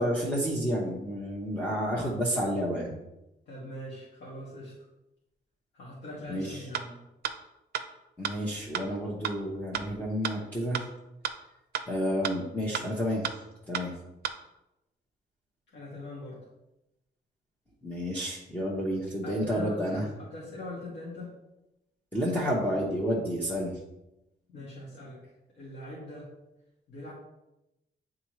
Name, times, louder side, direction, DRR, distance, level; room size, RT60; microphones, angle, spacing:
voice 1, 0.0-2.9 6.3-6.6 8.2-10.9 11.9-13.3 13.7-13.9 17.8-20.1 22.1-23.8, equal, 10° left, -4 dB, 0.8 m, -30 dB
voice 2, 3.5-4.7 5.7-7.0 15.7-16.4 19.2-21.3 24.5-25.2 25.5-26.3 26.9-27.1, left 1 dB, 75° left, -8 dB, 1.8 m, -41 dB
sound 1, 6.7-6.8 7.2-7.3 7.7-7.8 8.2-8.3 8.7-8.8 9.2-9.3 9.7-9.8 10.2-10.3 10.7-10.8 11.2-11.3 11.7-11.8 12.2-12.3 12.7-12.8 13.2-13.3 13.7-13.8 14.2-14.3, right 8 dB, 65° right, 0.5 m, -31 dB
9.0 x 3.6 x 3.1 m, 0.93 s
wide cardioid pair, 170°, 18 cm